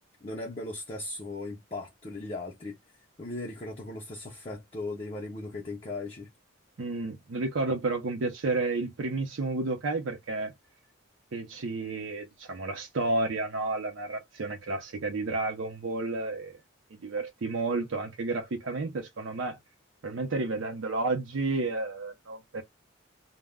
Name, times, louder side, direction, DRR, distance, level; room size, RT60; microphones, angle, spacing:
voice 1, 0.2-2.8 3.2-6.3, left 2 dB, 25° left, 0.5 m, -38 dB
voice 2, 6.8-10.5 11.3-16.6 16.9-19.6 20.0-22.6, right 3 dB, 65° right, 0.5 m, -31 dB
2.1 x 2.0 x 3.4 m
head